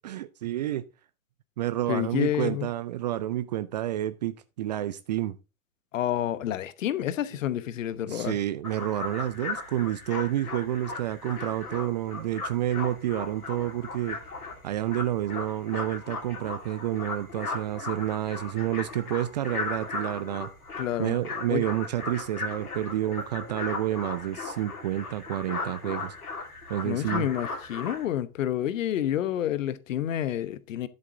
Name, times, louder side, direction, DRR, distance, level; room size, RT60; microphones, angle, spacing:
voice 1, 0.0-0.8 1.6-5.4 8.1-14.2 14.6-20.5 21.0-26.2 26.7-27.3, right 13 dB, 30° right, 0.4 m, -29 dB
voice 2, 1.9-2.7 5.9-8.4 20.8-21.2 21.5-21.6 26.8-30.9, left 11 dB, 60° left, 1.0 m, -29 dB
sound 1, 8.6-28.1, left 3 dB, 75° left, 2.6 m, -37 dB
10.0 x 7.6 x 3.7 m
figure-of-eight pair, 100°, 45 cm